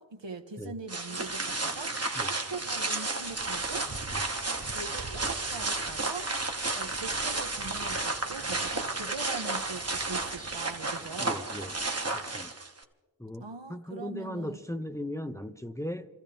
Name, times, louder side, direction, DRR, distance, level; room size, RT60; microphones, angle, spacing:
voice 1, 0.0-1.9 2.2-3.9 4.7-6.3 6.7-11.4 13.4-14.6, right 4 dB, 70° right, 6 dB, 1.3 m, -42 dB
sound 1, 0.9-12.8, right 3 dB, 30° right, 1.2 m, -32 dB
voice 2, 11.2-11.7 12.1-12.5 13.2-16.1, left 1 dB, 5° left, 7 dB, 0.7 m, -38 dB
27.5 x 14.5 x 3.5 m, 1.2 s
wide cardioid pair, 60°, 47 cm